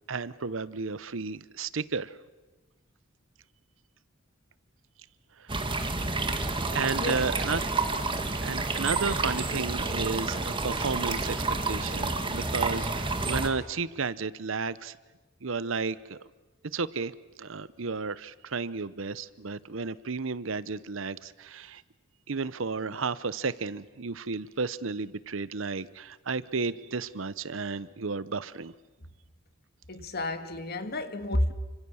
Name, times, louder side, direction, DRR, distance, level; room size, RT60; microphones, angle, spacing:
voice 1, 0.1-2.1 5.8-5.9 6.7-7.6 8.4-15.0 15.4-16.2 16.7-17.1 17.4-21.8 22.3-28.7, right 4 dB, 70° right, 0.8 m, -33 dB
sound 1, 5.5-13.5, right 3 dB, 25° right, 1.9 m, -29 dB
voice 2, 8.1-8.6 29.9-31.5, left 1 dB, 50° left, 1.8 m, -32 dB
29.0 x 25.5 x 7.1 m
head